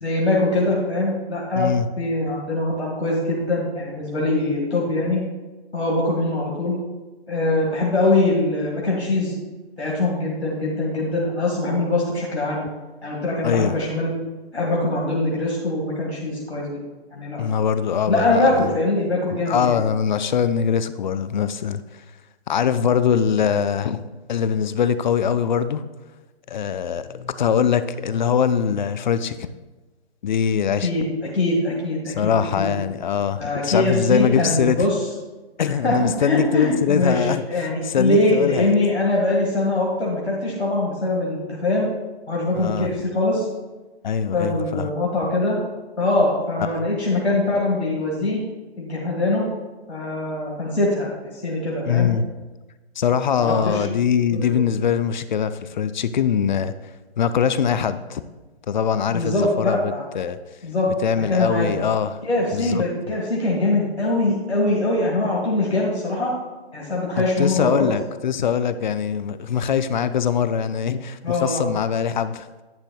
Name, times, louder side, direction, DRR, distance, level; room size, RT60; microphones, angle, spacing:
voice 1, 0.0-1.7 2.0-5.2 5.7-6.8 7.3-9.3 9.8-12.6 13.0-14.1 14.5-16.7 17.1-17.4 18.1-19.7 30.8-31.1 31.3-32.7 33.4-35.0 35.6-41.9 42.3-43.5 44.3-45.6 46.0-48.4 48.8-49.5 49.9-51.1 51.4-52.1 53.4-53.8 54.3-54.6 59.1-60.0 60.6-60.9 61.3-61.7 62.2-66.3 66.7-67.9 71.2-71.6, left 2 dB, 90° left, -3 dB, 2.0 m, -22 dB
voice 2, 1.6-1.9 13.4-13.7 17.4-18.7 19.3-21.8 22.5-24.0 24.3-25.8 26.5-29.5 30.2-30.9 32.1-34.8 35.6-37.4 37.8-38.7 42.6-42.9 44.0-44.9 46.7-46.9 51.9-52.2 53.0-56.7 57.2-58.2 58.7-60.4 61.0-62.2 62.5-63.1 67.2-72.6, left 7 dB, 45° left, 13 dB, 0.5 m, -22 dB
10.5 x 8.8 x 2.3 m, 1.2 s
figure-of-eight pair, 140°, 32 cm